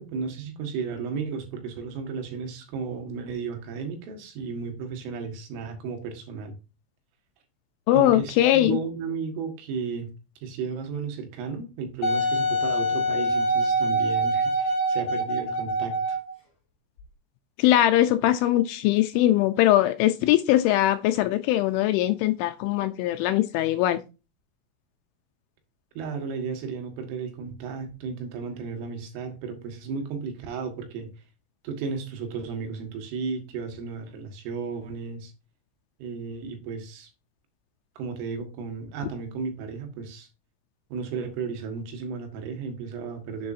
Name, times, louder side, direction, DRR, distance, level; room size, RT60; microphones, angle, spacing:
voice 1, 0.0-6.6 7.9-10.1 10.4-16.2 26.0-31.1 31.6-35.3 36.0-37.1 38.0-40.3 40.9-43.5, right 5 dB, 75° right, 4.2 m, -34 dB
voice 2, 7.9-8.8 17.6-24.0, left 14 dB, 80° left, 2.9 m, -21 dB
Wind instrument woodwind instrument, 12.0-16.3 17.0-17.1, right 1 dB, 40° left, 2.7 m, -25 dB
10.5 x 7.7 x 2.7 m
omnidirectional pair, 5.9 m